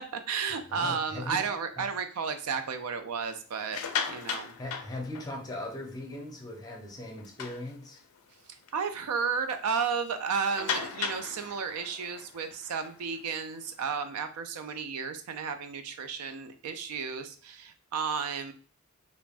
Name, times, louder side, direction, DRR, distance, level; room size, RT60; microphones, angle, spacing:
voice 1, 0.0-3.8 4.1-4.5 8.7-18.5, right 6 dB, 85° right, 8 dB, 0.4 m, -33 dB
voice 2, 0.7-1.4 1.8-1.9 4.6-8.0, left 1 dB, 15° left, 0 dB, 0.6 m, -39 dB
sound 1, 3.6-5.7 6.2-6.3 6.7-6.8 7.2-8.2 8.7-8.8 9.2-9.3 10.5-13.9, left 7 dB, 75° left, 0.4 m, -37 dB
3.3 x 2.1 x 2.4 m, 0.40 s
head